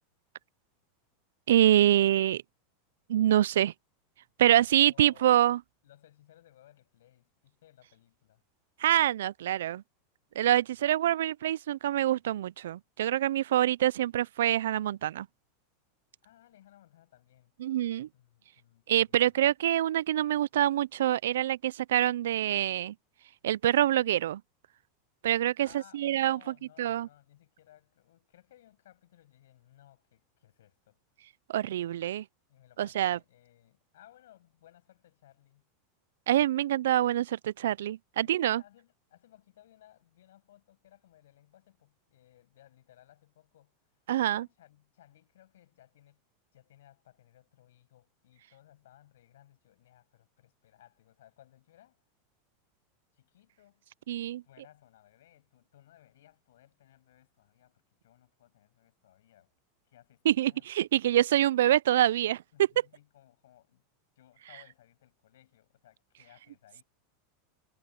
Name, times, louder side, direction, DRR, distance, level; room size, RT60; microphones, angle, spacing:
voice 1, 1.5-2.4 3.1-3.7 4.4-5.6 8.8-9.8 10.4-15.3 17.6-18.1 18.9-22.9 23.4-24.4 25.2-26.4 26.8-27.1 31.5-32.2 32.8-33.2 36.3-38.6 44.1-44.5 54.1-54.4 60.3-62.7, right 12 dB, 85° right, 0.3 m, -25 dB
voice 2, 4.6-5.5 5.8-8.4 10.7-11.1 16.2-17.5 18.1-19.4 25.6-31.0 32.5-35.7 38.2-43.8 44.2-46.2 46.5-52.0 53.1-53.8 54.4-59.5 59.9-60.7 62.5-63.8 64.2-66.8, left 13 dB, 85° left, 7.6 m, -60 dB
supercardioid pair, 125°, 0 cm